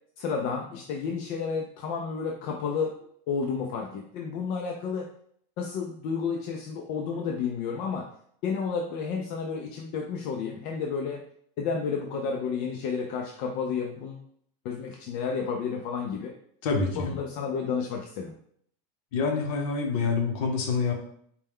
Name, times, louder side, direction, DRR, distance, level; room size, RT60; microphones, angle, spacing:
voice 1, 0.2-2.9 3.3-5.1 5.6-8.1 8.4-11.2 11.6-14.2 14.6-16.3 17.0-18.3, left 5 dB, 50° left, 1 dB, 0.4 m, -31 dB
voice 2, 16.6-17.1 19.1-20.9, left 4 dB, 70° left, 3 dB, 0.9 m, -26 dB
4.3 x 2.2 x 3.5 m, 0.65 s
cardioid pair, 165°, 19 cm